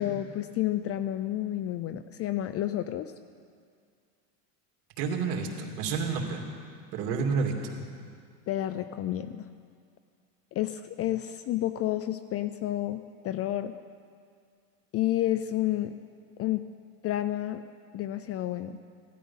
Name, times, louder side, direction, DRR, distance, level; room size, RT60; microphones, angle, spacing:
voice 1, 0.0-3.1 8.5-9.5 10.5-13.7 14.9-15.9 16.4-16.6 17.0-17.6 17.9-18.8, left 13 dB, 35° left, 12 dB, 0.4 m, -30 dB
voice 2, 5.0-6.4 6.9-7.8, right 5 dB, 70° right, 2 dB, 2.6 m, -30 dB
17.0 x 12.5 x 5.6 m, 2.2 s
supercardioid pair, 115°, 50 cm